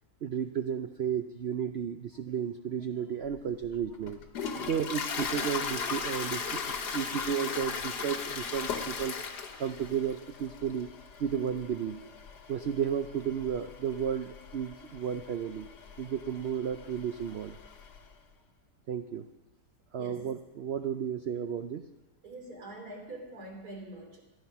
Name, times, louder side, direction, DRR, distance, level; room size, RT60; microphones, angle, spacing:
voice 1, 0.2-4.2 4.6-9.2 9.6-10.9 11.2-12.1 12.5-15.7 16.0-17.6 18.9-19.3 19.9-21.8, right 8 dB, 85° right, 8 dB, 0.5 m, -33 dB
Toilet flush, 3.3-18.1, left 5 dB, 80° left, 1.7 m, -38 dB
voice 2, 22.2-24.2, right 2 dB, 65° right, 1 dB, 3.7 m, -44 dB
14.5 x 10.5 x 5.9 m, 1.1 s
omnidirectional pair, 1.8 m